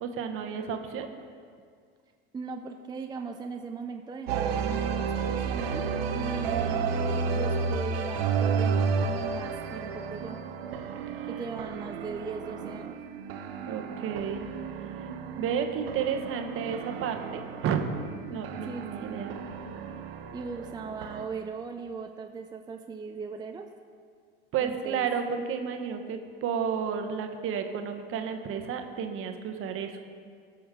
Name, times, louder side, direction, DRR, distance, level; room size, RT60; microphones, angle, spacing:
voice 1, 0.0-1.1 13.7-14.5 15.4-17.8 18.3-19.3 24.5-29.9, right 7 dB, 45° right, 6 dB, 1.1 m, -31 dB
voice 2, 2.3-5.9 6.1-10.4 11.3-13.0 18.6-19.3 20.3-23.7 24.6-25.1, right 5 dB, 15° right, 4 dB, 0.5 m, -38 dB
sound 1, 4.3-21.2, right 5 dB, 80° right, 0.8 m, -32 dB
16.0 x 6.2 x 3.7 m, 2.1 s
hypercardioid pair, 90°, 29 cm